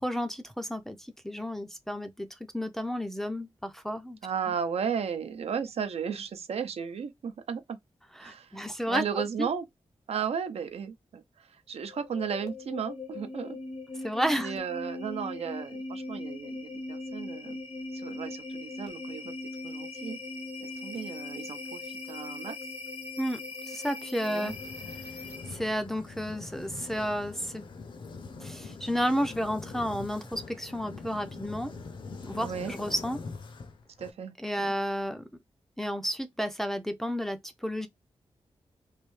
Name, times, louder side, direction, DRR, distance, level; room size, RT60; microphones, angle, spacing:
voice 1, 0.0-4.2 8.1-9.5 14.0-14.5 23.2-24.5 25.5-27.6 28.4-31.7 32.2-33.2 34.4-35.3 35.8-37.9, equal, 5° left, 0.4 m, -32 dB
voice 2, 4.2-7.8 8.2-9.6 10.1-13.6 14.4-17.6 17.9-19.3 19.6-20.2 20.6-22.6 24.2-24.5 32.4-32.7 34.0-34.7, right 7 dB, 80° right, 0.6 m, -35 dB
sound 1, 11.8-25.7, left 2 dB, 85° left, 0.9 m, -40 dB
sound 2, 24.5-34.1, left 4 dB, 50° left, 0.6 m, -43 dB
3.2 x 2.6 x 3.1 m
wide cardioid pair, 175°, 10 cm